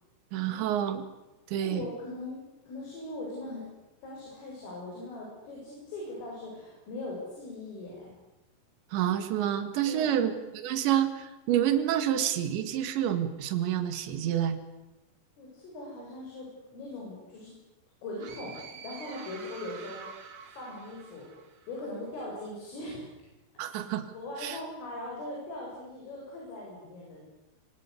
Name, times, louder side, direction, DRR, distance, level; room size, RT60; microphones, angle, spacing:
voice 1, 0.3-1.1 1.5-1.9 8.9-14.6 23.6-24.1 24.4-24.6, right 10 dB, 70° right, 9 dB, 4.2 m, -28 dB
voice 2, 1.6-2.4 2.6-3.6 4.0-8.1 9.9-10.3 15.4-17.5 18.0-21.3 21.7-23.1 24.1-27.2, left 2 dB, 85° left, -3 dB, 10.5 m, -40 dB
sound 1, 18.2-21.8, right 6 dB, 45° right, 2.8 m, -47 dB
26.5 x 26.0 x 8.5 m, 1.0 s
omnidirectional pair, 5.7 m